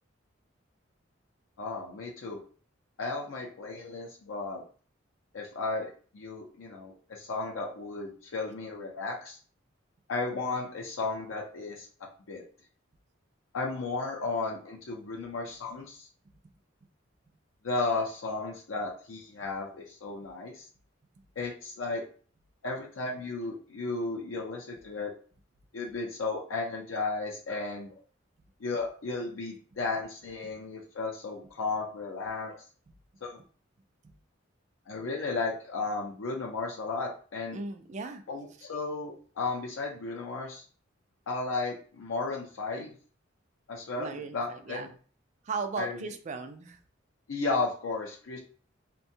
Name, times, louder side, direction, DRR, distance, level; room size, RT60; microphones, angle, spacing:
voice 1, 1.6-2.4 3.0-4.6 5.3-9.4 10.1-11.9 12.3-12.4 13.5-16.1 17.6-20.7 21.4-22.0 22.6-25.1 25.7-27.9 28.6-32.6 33.2-33.4 34.9-37.6 38.3-40.6 41.3-42.9 43.7-44.9 45.8-46.0 47.3-48.4, left 3 dB, 90° left, -1 dB, 0.5 m, -34 dB
voice 2, 37.5-38.2 44.0-44.9 45.4-46.8, right 4 dB, 35° right, 6 dB, 0.3 m, -37 dB
2.6 x 2.2 x 2.6 m, 0.41 s
head